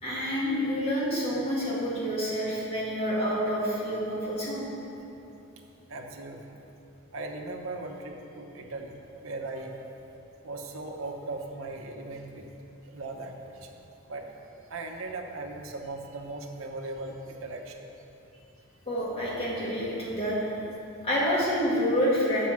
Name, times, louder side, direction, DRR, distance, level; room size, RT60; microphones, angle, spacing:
voice 1, 0.0-4.7 18.9-20.5 21.0-22.5, equal, 30° left, -7 dB, 2.2 m, -28 dB
voice 2, 5.9-6.6 7.1-9.7 10.4-12.5 12.8-13.7 14.1-14.3 14.6-17.8, right 2 dB, 70° right, 2 dB, 0.9 m, -38 dB
7.6 x 6.4 x 6.1 m, 2.8 s
head